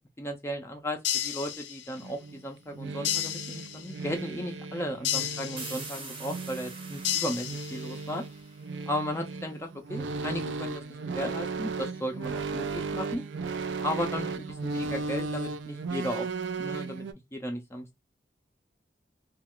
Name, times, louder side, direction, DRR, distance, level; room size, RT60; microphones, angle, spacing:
voice 1, 0.2-8.2 8.9-13.2 13.8-16.3 16.6-17.0 17.3-18.0, equal, 15° left, 0.4 m, -35 dB
sound 1, 1.0-2.1 3.0-4.1 5.0-6.1 7.0-8.1, left 10 dB, 80° left, 0.4 m, -33 dB
sound 2, 2.0-17.1, right 4 dB, 90° right, 0.4 m, -36 dB
sound 3, 5.6-9.2, right 4 dB, 30° right, 0.7 m, -45 dB
2.3 x 2.3 x 3.4 m
head